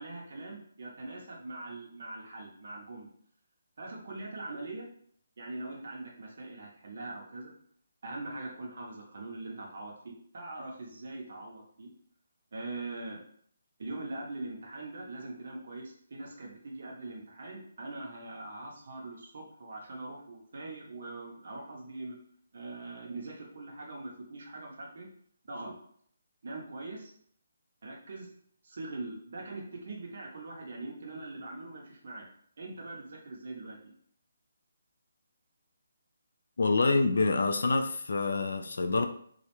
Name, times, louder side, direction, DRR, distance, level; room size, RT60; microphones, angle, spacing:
voice 1, 0.0-3.1 3.8-4.9 5.4-7.5 8.0-11.9 12.5-13.2 13.8-22.2 22.5-25.1 25.5-25.8 26.4-27.1 27.8-28.3 28.6-32.3 32.6-33.8, right 2 dB, 45° right, -2 dB, 0.6 m, -42 dB
voice 2, 36.6-39.1, left 3 dB, 60° left, 7 dB, 0.3 m, -26 dB
2.3 x 2.1 x 2.9 m, 0.62 s
hypercardioid pair, 175°, 0 cm